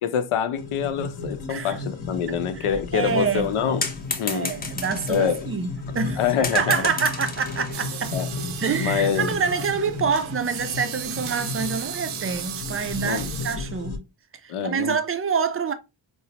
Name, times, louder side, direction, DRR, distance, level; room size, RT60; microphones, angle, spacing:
voice 1, 0.0-3.8 4.2-4.5 5.1-5.5 6.2-6.9 8.1-8.3 8.8-9.3 13.0-13.3 14.5-15.0, left 8 dB, 85° left, 0.6 m, -25 dB
sound 1, 0.6-14.0, left 3 dB, 50° left, 0.8 m, -34 dB
voice 2, 2.3-3.5 4.2-5.7 5.9-6.2 6.5-8.2 8.6-14.0 14.4-15.7, right 6 dB, 30° right, 0.3 m, -26 dB
sound 2, 3.3-5.4 6.0-6.1 6.4-8.2, left 3 dB, 20° left, 0.6 m, -32 dB
sound 3, 7.7-13.6, right 8 dB, 75° right, 0.6 m, -35 dB
3.9 x 2.0 x 2.7 m
wide cardioid pair, 110°, 49 cm